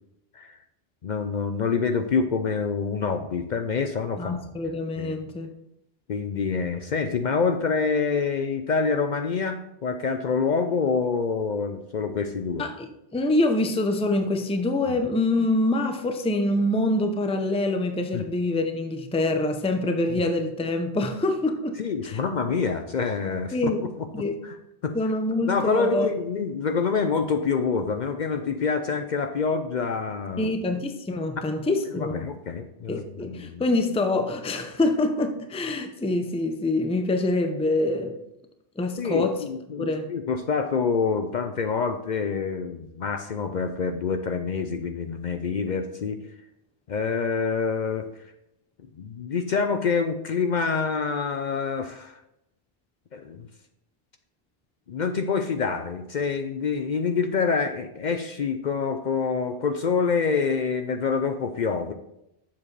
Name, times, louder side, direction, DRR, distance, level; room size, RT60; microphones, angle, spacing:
voice 1, 1.0-4.4 5.0-5.2 6.1-12.6 14.9-15.0 18.1-18.3 20.1-20.2 21.8-23.5 24.4-24.5 24.8-25.0 25.5-30.5 32.0-33.6 39.0-46.2 46.9-48.0 49.0-52.2 53.1-53.5 54.9-61.9, left 5 dB, 55° left, 7 dB, 0.6 m, -26 dB
voice 2, 4.2-5.5 12.6-21.8 22.0-22.2 23.5-23.8 24.1-24.4 24.9-26.1 30.4-32.2 32.9-38.2 38.8-39.4 39.8-40.1, left 2 dB, 10° left, 6 dB, 0.5 m, -25 dB
7.4 x 7.1 x 3.2 m, 0.83 s
omnidirectional pair, 1.0 m